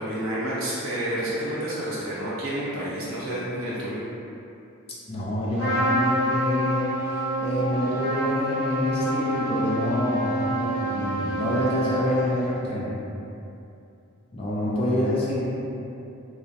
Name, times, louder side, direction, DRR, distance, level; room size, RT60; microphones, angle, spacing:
voice 1, 0.0-4.0, right 1 dB, 65° right, -9 dB, 0.7 m, -29 dB
voice 2, 5.1-6.9 7.4-12.9 14.3-15.4, left 1 dB, 25° left, -7 dB, 0.4 m, -27 dB
Trumpet, 5.6-12.5, right 1 dB, 85° left, 0.8 m, -27 dB
2.2 x 2.1 x 2.7 m, 2.7 s
head